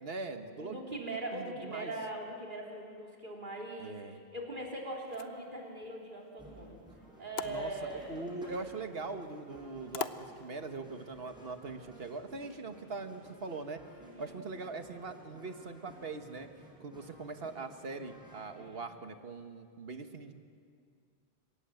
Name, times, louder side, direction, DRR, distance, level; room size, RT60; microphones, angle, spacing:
voice 1, 0.0-0.8 1.3-1.9 3.8-4.2 7.4-13.8 14.2-16.5 16.8-20.3, right 3 dB, 70° right, 7 dB, 1.6 m, -41 dB
voice 2, 0.6-6.8 7.2-8.3 12.7-12.8 14.0-14.4 18.5-18.8, right 1 dB, 50° right, 0 dB, 3.8 m, -41 dB
sound 1, 4.9-10.9, left 7 dB, 80° left, 1.1 m, -46 dB
sound 2, 6.4-18.8, equal, 5° right, 6.2 m, -55 dB
29.5 x 17.5 x 7.8 m, 2.3 s
omnidirectional pair, 1.0 m